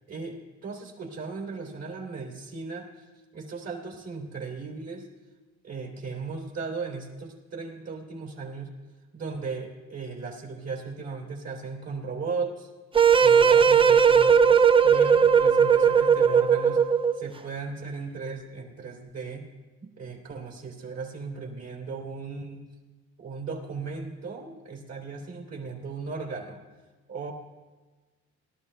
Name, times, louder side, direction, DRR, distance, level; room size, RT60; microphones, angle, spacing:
voice 1, 0.1-2.9 3.3-5.1 5.6-8.7 9.1-12.7 13.1-14.4 14.8-16.9 17.2-19.5 19.8-22.7 23.2-26.6 27.1-27.3, right 4 dB, 55° right, 1 dB, 3.1 m, -36 dB
sound 1, 12.9-17.3, right 7 dB, 20° right, 0.4 m, -18 dB
17.5 x 12.0 x 3.4 m, 1.3 s
cardioid pair, 90°, 30 cm